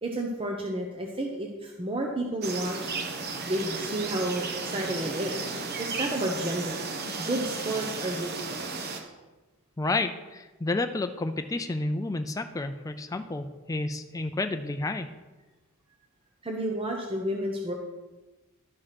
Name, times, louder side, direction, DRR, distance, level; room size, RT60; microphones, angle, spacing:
voice 1, 0.0-3.0 3.5-5.5 5.8-9.1 16.4-17.7, right 1 dB, 25° right, 1 dB, 0.8 m, -31 dB
sound 1, 2.4-9.0, right 4 dB, 45° right, 1.0 m, -34 dB
voice 2, 9.8-15.1, left 2 dB, 15° left, 7 dB, 0.4 m, -30 dB
11.5 x 4.8 x 5.8 m, 1.2 s
head